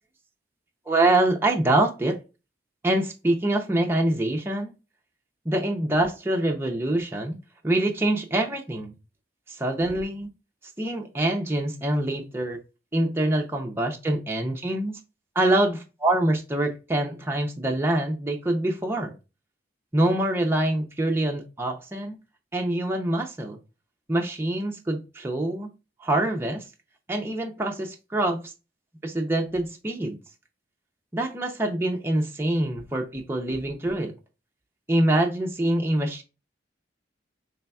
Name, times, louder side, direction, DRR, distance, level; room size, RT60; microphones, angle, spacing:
voice 1, 0.9-2.2 2.8-4.7 5.5-7.4 7.6-8.9 9.5-10.3 10.8-12.6 12.9-15.0 15.4-19.1 19.9-22.2 22.5-23.6 24.1-25.7 26.0-26.6 27.1-28.5 29.0-30.2 31.1-34.1 34.9-36.2, right 1 dB, 15° right, 0.6 m, -25 dB
5.5 x 3.3 x 2.3 m
head